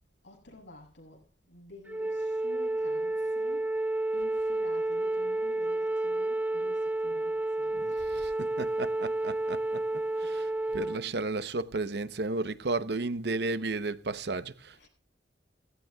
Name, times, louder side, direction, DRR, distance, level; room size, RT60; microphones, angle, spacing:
voice 1, 0.2-3.7 4.1-8.2 10.2-10.3 14.8-14.9, left 1 dB, 85° left, 8.0 m, -52 dB
Wind instrument woodwind instrument, 1.9-11.0, right 2 dB, 10° right, 0.6 m, -30 dB
voice 2, 7.7-9.8 10.2-14.9, right 3 dB, 65° right, 0.9 m, -34 dB
18.0 x 15.5 x 2.3 m
head